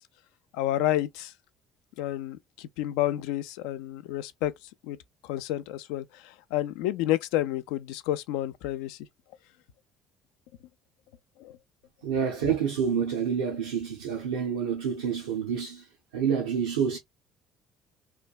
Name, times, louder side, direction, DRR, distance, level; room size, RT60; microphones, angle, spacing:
voice 1, 0.5-1.3 2.0-4.5 4.8-5.0 5.2-9.0 11.4-11.6, left 13 dB, 80° left, 0.4 m, -30 dB
voice 2, 12.0-15.9 16.1-17.0, right 7 dB, 90° right, 0.6 m, -28 dB
3.1 x 2.2 x 2.3 m
hypercardioid pair, 65°, 0 cm